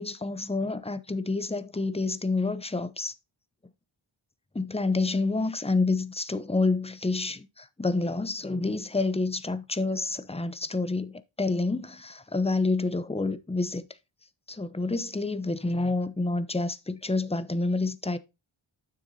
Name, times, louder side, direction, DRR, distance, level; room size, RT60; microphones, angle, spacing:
voice 1, 0.0-3.1 4.5-13.8 14.5-18.2, left 3 dB, 10° left, 0.7 m, -28 dB
9.4 x 6.9 x 2.7 m
wide cardioid pair, 55°, 49 cm